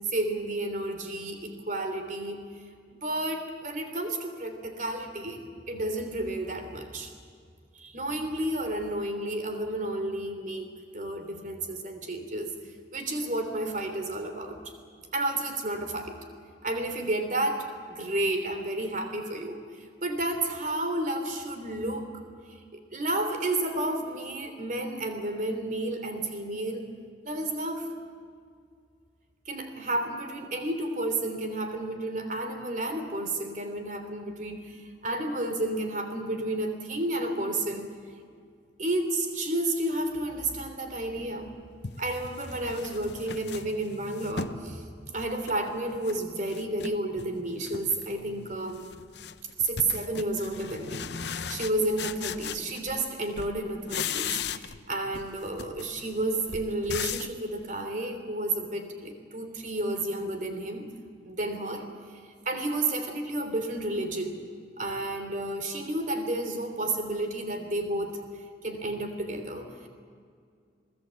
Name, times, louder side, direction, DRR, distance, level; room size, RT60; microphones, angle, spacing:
voice 1, 0.1-2.4 3.0-5.4 5.7-7.1 7.7-12.5 12.9-14.6 15.1-16.2 16.6-22.1 22.7-26.9 27.2-27.9 29.5-37.9 38.8-41.5 42.0-44.8 45.1-48.8 49.6-60.9 61.2-61.8 62.1-62.2 62.4-64.3 64.8-68.2 68.6-69.9, right 1 dB, 45° right, 6 dB, 3.2 m, -31 dB
sound 1, 41.2-41.3 41.8-44.6 45.1-46.2 46.5-47.3 47.6-48.1 48.4-53.1 53.4-54.9 55.1-57.4, left 7 dB, 70° left, 0.8 m, -38 dB
27.5 x 19.0 x 8.3 m, 2.2 s
head